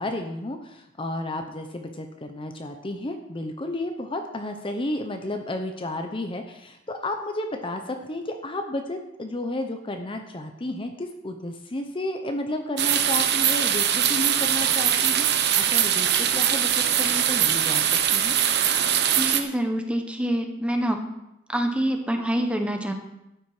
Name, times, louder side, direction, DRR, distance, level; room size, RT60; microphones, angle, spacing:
voice 1, 0.0-18.4, left 1 dB, 25° left, 5 dB, 0.9 m, -32 dB
sound 1, 12.8-19.4, right 9 dB, 55° right, 0.9 m, -22 dB
voice 2, 19.2-21.0 21.5-22.9, right 1 dB, 5° right, 4 dB, 1.2 m, -26 dB
12.5 x 9.0 x 4.9 m, 0.89 s
head